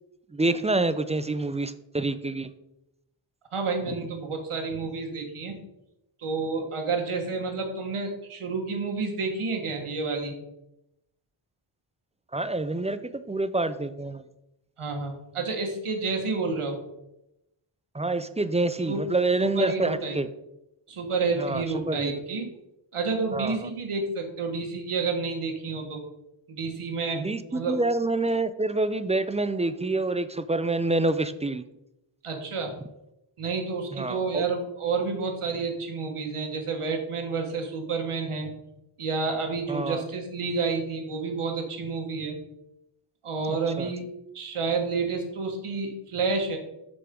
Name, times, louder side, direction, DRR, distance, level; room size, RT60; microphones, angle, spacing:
voice 1, 0.3-2.5 12.3-14.2 17.9-20.3 21.4-22.1 23.3-23.7 27.2-31.6 33.9-34.4 39.7-40.1 43.5-43.9, right 2 dB, 15° right, 13 dB, 0.3 m, -27 dB
voice 2, 3.5-5.6 6.2-10.3 14.8-16.8 18.9-19.0 19.4-20.2 20.9-22.5 22.9-26.0 26.5-27.2 27.5-27.8 32.2-32.7 33.4-38.5 39.0-42.4 43.2-44.0 44.3-46.6, right 4 dB, 80° right, 3 dB, 1.6 m, -29 dB
6.9 x 6.7 x 3.7 m, 0.88 s
wide cardioid pair, 70°, 50 cm